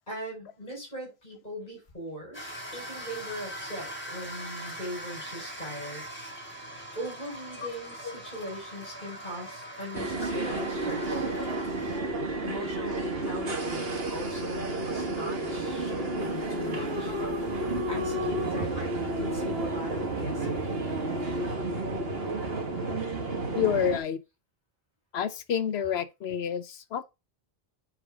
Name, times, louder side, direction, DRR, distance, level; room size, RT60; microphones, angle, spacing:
voice 1, 0.0-2.4 2.7-6.0 6.9-11.3 12.4-17.1 17.9-20.8, equal, 45° left, 4.7 m, -40 dB
sound 1, 2.3-12.0, right 1 dB, 10° left, 3.6 m, -41 dB
sound 2, 9.9-24.0, right 2 dB, 70° right, 1.8 m, -31 dB
sound 3, 16.2-21.5, left 2 dB, 85° right, 2.1 m, -36 dB
voice 2, 23.5-24.2 25.1-27.0, left 8 dB, 90° left, 1.0 m, -28 dB
9.9 x 4.9 x 3.6 m
omnidirectional pair, 1.0 m